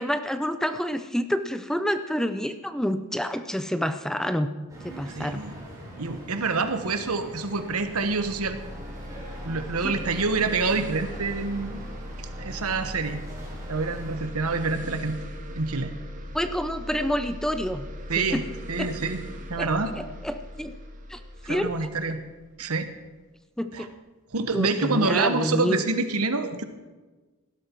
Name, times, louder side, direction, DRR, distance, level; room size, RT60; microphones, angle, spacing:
voice 1, 0.0-4.5 4.8-5.4 9.8-10.0 16.3-17.9 18.2-18.5 18.8-18.9 19.6-19.7 19.9-20.8 21.1-21.2 21.5-21.7 23.6-23.9 24.5-25.8, equal, ahead, 10 dB, 0.5 m, -28 dB
sound 1, 4.7-14.3, right 1 dB, 15° right, 4.6 m, -43 dB
voice 2, 5.1-5.5 6.0-8.6 9.4-11.8 12.2-13.2 13.7-15.2 15.5-15.9 18.1-18.4 18.7-19.2 19.5-19.9 21.4-22.2 22.6-22.9 23.7-23.9 24.3-26.6, right 3 dB, 85° right, 9 dB, 1.3 m, -27 dB
sound 2, 7.6-23.0, equal, 35° right, 1.9 m, -39 dB
17.5 x 12.0 x 4.6 m, 1.3 s
head